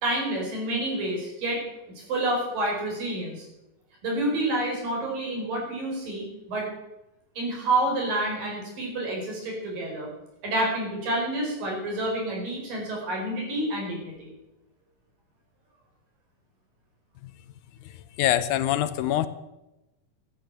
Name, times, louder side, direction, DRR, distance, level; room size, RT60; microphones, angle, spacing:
voice 1, 0.0-1.6 2.0-3.5 4.0-6.7 7.4-10.1 10.4-14.3, right 1 dB, 85° right, -1 dB, 6.6 m, -28 dB
voice 2, 18.2-19.3, left 12 dB, 75° left, 13 dB, 2.0 m, -24 dB
12.5 x 9.8 x 8.9 m, 0.96 s
omnidirectional pair, 3.8 m